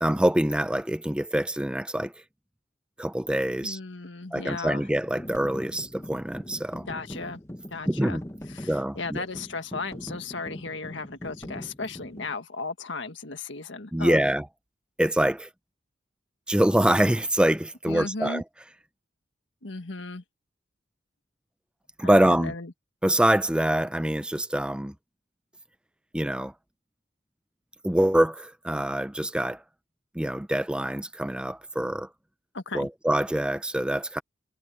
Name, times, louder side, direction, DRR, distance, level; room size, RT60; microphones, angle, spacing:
voice 1, 0.0-2.1 3.0-3.8 4.3-6.9 7.9-8.2 8.7-9.2 13.9-14.5 15.0-15.5 16.5-18.4 22.0-22.5 23.0-24.9 26.1-26.5 27.8-29.6 30.2-32.1 32.7-34.2, right 1 dB, 5° right, 0.5 m, -25 dB
voice 2, 3.6-4.8 6.9-7.4 7.7-8.2 8.5-14.2 17.9-18.4 19.6-20.2 22.0-22.7 32.5-32.9, left 3 dB, 70° left, 1.8 m, -35 dB
sound 1, 5.0-12.3, equal, 15° left, 1.2 m, -41 dB
head